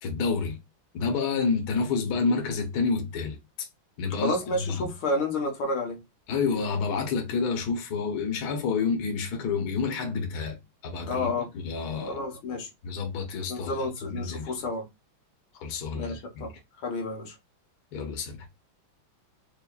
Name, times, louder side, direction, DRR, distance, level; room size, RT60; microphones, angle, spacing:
voice 1, 0.0-0.6 0.9-3.4 4.0-4.4 4.7-4.9 6.3-12.2 12.8-13.7 14.1-14.5 15.6-16.4 17.9-18.5, left 5 dB, 55° left, 1.5 m, -29 dB
voice 2, 4.2-6.0 11.1-11.5 12.0-12.7 13.5-14.9 15.9-17.4, left 2 dB, 85° left, 2.1 m, -30 dB
4.9 x 2.8 x 2.4 m
omnidirectional pair, 2.2 m